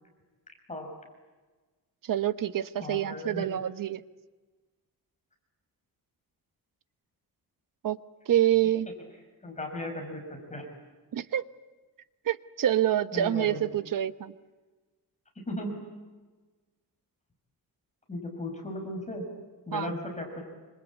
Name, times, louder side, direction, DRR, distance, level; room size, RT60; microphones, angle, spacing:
voice 1, 2.0-4.0 7.8-8.0 8.3-8.9 11.1-11.4 12.2-14.3 19.7-19.9, right 11 dB, 60° right, 13 dB, 1.1 m, -27 dB
voice 2, 2.8-3.5 9.4-10.6 13.1-13.7 15.4-15.8 18.1-19.2 19.7-20.4, left 1 dB, 20° left, 3 dB, 5.7 m, -36 dB
27.0 x 25.5 x 8.4 m, 1.3 s
wide cardioid pair, 160°, 37 cm